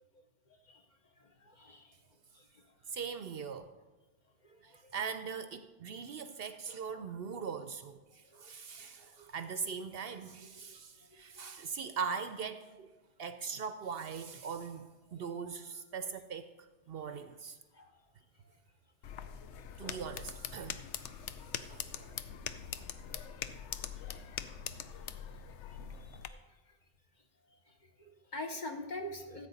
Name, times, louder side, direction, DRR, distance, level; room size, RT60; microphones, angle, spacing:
voice 1, 2.9-3.7 4.6-12.9 13.2-16.5 16.9-17.6 19.8-20.8 21.7-21.8, right 6 dB, 65° right, 10 dB, 0.7 m, -41 dB
sound 1, 19.0-26.3, left 8 dB, 75° left, 0.9 m, -43 dB
voice 2, 21.7-22.1 28.0-29.5, left 1 dB, 40° left, 4 dB, 1.0 m, -42 dB
14.0 x 8.1 x 4.0 m, 1.2 s
omnidirectional pair, 1.2 m